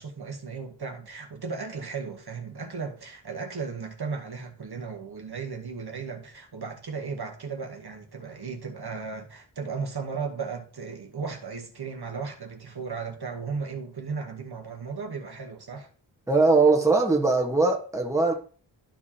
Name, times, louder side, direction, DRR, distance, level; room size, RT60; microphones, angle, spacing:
voice 1, 0.0-15.9, right 5 dB, 55° right, 1.1 m, -35 dB
voice 2, 16.3-18.3, right 3 dB, 5° right, 1.3 m, -21 dB
11.5 x 4.8 x 2.8 m
wide cardioid pair, 95°, 47 cm